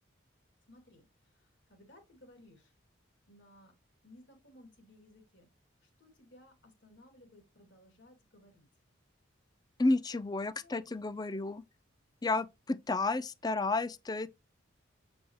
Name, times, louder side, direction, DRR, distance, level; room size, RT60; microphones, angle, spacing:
voice 1, 0.7-2.7 3.3-3.7 4.0-5.5 5.8-8.7 10.1-10.2 10.6-11.4, left 1 dB, 65° left, 2.7 m, -59 dB
voice 2, 9.8-11.6 12.2-14.3, left 2 dB, 20° left, 0.4 m, -31 dB
7.7 x 6.1 x 3.1 m
head